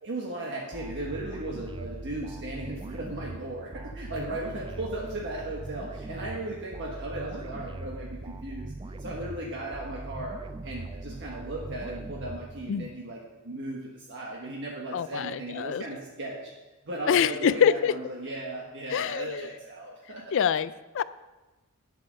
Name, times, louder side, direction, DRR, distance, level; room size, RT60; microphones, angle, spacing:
voice 1, 0.0-8.7 9.0-16.5 16.8-20.2, right 1 dB, 55° right, -3 dB, 1.4 m, -36 dB
sound 1, 0.7-13.0, right 2 dB, 20° right, 0.4 m, -40 dB
voice 2, 14.9-15.8 17.1-18.0 18.9-19.4 20.3-21.0, left 8 dB, 60° left, 16 dB, 0.4 m, -25 dB
8.8 x 7.3 x 6.4 m, 1.1 s
head